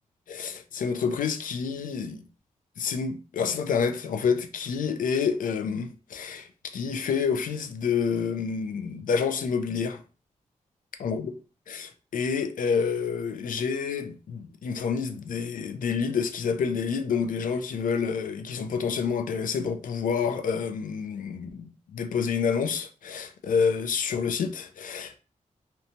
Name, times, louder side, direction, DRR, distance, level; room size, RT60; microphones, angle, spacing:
voice 1, 0.3-2.2 2.8-10.0 11.0-11.3 11.7-25.2, left 6 dB, 80° left, 0.4 m, -28 dB
2.8 x 2.2 x 2.6 m
wide cardioid pair, 90°, 14 cm